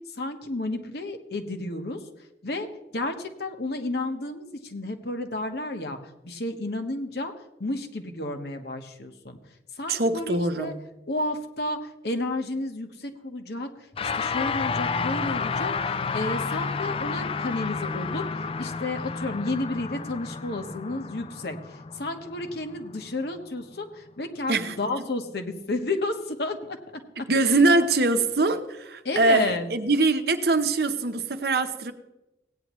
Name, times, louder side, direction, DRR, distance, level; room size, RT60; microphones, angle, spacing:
voice 1, 0.1-2.0 2.4-2.7 2.9-7.3 7.6-9.4 9.7-10.7 11.1-26.8 27.2-27.9 29.0-29.7, left 2 dB, 60° left, 1.2 m, -32 dB
voice 2, 9.9-10.8 24.5-24.8 27.3-31.9, right 2 dB, 55° right, 0.8 m, -23 dB
sound 1, 13.9-23.4, left 5 dB, 30° left, 0.3 m, -31 dB
17.0 x 9.4 x 3.1 m
head